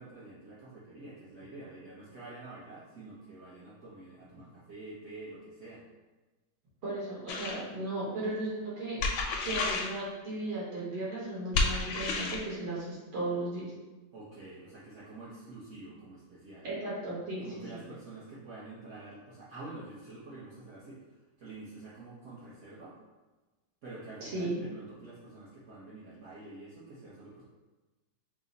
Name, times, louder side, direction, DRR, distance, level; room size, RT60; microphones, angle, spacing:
voice 1, 0.0-5.8 14.1-16.7 17.4-22.9 23.8-27.4, right 2 dB, 55° right, -10 dB, 0.8 m, -47 dB
voice 2, 6.8-9.0 9.4-13.6 16.6-17.8 24.2-24.6, right 2 dB, 80° right, -7 dB, 2.3 m, -36 dB
sound 1, 7.3-7.6 9.0-9.9 11.5-12.5, left 3 dB, 80° left, 1.4 m, -30 dB
4.8 x 2.1 x 3.8 m, 1.2 s
omnidirectional pair, 2.3 m